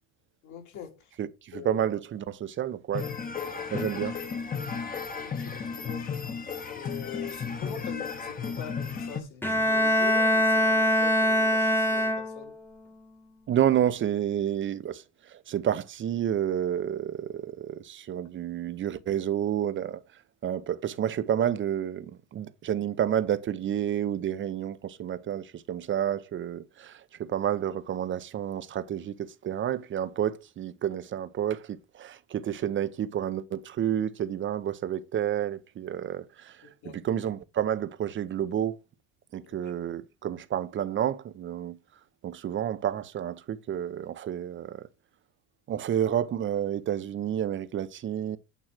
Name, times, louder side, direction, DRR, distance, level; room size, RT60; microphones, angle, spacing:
voice 1, 0.4-1.1 1.5-1.8 5.2-6.1 6.7-12.5 36.8-37.0, left 7 dB, 55° left, 2.6 m, -42 dB
voice 2, 1.2-3.1 3.7-4.2 13.5-20.0 20.4-36.7 36.9-38.8 39.3-41.8 42.2-44.9 45.7-48.4, right 10 dB, 35° right, 0.7 m, -30 dB
sound 1, 2.9-9.2, left 6 dB, 25° left, 1.2 m, -34 dB
Bowed string instrument, 9.4-12.6, equal, 5° left, 1.1 m, -23 dB
8.9 x 3.1 x 6.0 m
supercardioid pair, 110°, 36 cm